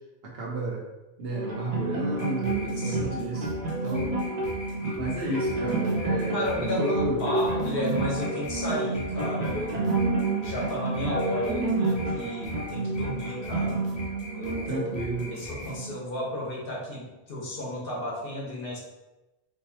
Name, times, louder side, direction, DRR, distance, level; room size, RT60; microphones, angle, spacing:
voice 1, 0.3-0.8 1.2-3.5 3.8-4.2 5.0-7.3 14.6-15.4, right 1 dB, 70° right, -2 dB, 1.1 m, -32 dB
sound 1, 1.3-16.3, right 2 dB, 45° right, 0.7 m, -29 dB
sound 2, 2.1-15.7, left 1 dB, 35° left, 0.5 m, -41 dB
voice 2, 2.8-3.2 6.3-13.8 14.4-14.8 15.3-18.8, left 1 dB, 65° left, -3 dB, 1.1 m, -33 dB
4.6 x 2.1 x 2.8 m, 1.0 s
omnidirectional pair, 1.0 m